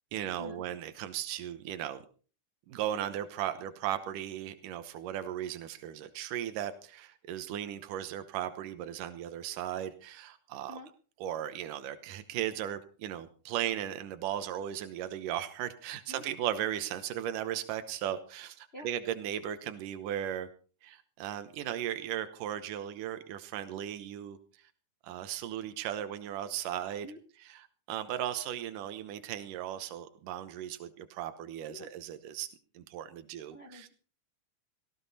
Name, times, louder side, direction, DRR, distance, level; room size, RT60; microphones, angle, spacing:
voice 1, 0.1-2.1 2.7-10.8 11.2-20.5 20.8-24.4 25.0-27.1 27.4-32.5 32.7-33.9, right 11 dB, 85° right, 10 dB, 2.7 m, -36 dB
voice 2, 33.5-33.9, left 1 dB, 50° left, 5 dB, 0.7 m, -47 dB
18.0 x 16.5 x 4.2 m, 0.39 s
omnidirectional pair, 3.7 m